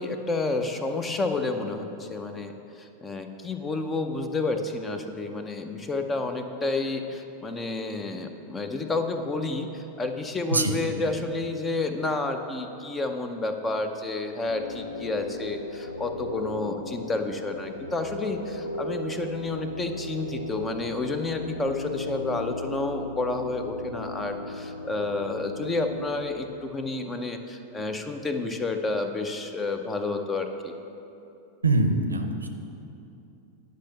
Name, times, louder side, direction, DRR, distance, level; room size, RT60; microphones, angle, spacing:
voice 1, 0.0-2.5 2.8-30.8, left 3 dB, 15° left, 6 dB, 0.7 m, -30 dB
sound 1, 14.4-26.1, left 1 dB, 85° left, 0.5 m, -37 dB
voice 2, 31.6-32.5, right 2 dB, 80° right, 6 dB, 0.6 m, -23 dB
10.5 x 5.3 x 6.6 m, 2.8 s
figure-of-eight pair, 90°, 0 cm